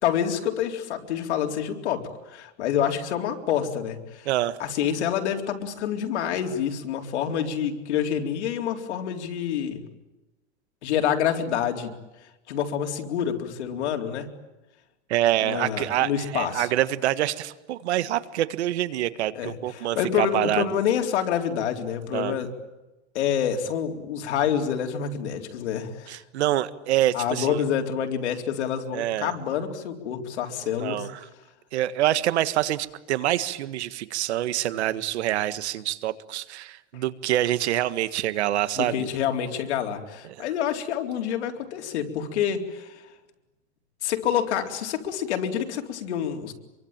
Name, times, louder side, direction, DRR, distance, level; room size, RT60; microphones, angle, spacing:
voice 1, 0.0-4.3 4.6-9.8 10.8-11.9 12.5-14.3 15.4-16.7 19.3-22.5 23.1-26.2 27.1-31.1 38.7-43.0 44.0-46.5, left 9 dB, 70° left, 4 dB, 4.1 m, -27 dB
voice 2, 4.2-4.6 15.1-20.6 22.1-22.4 26.1-27.6 28.9-29.3 30.8-31.2 31.7-39.1 40.3-40.5, right 13 dB, 70° right, 14 dB, 1.7 m, -26 dB
26.5 x 24.0 x 9.1 m, 1.0 s
supercardioid pair, 175°, 35 cm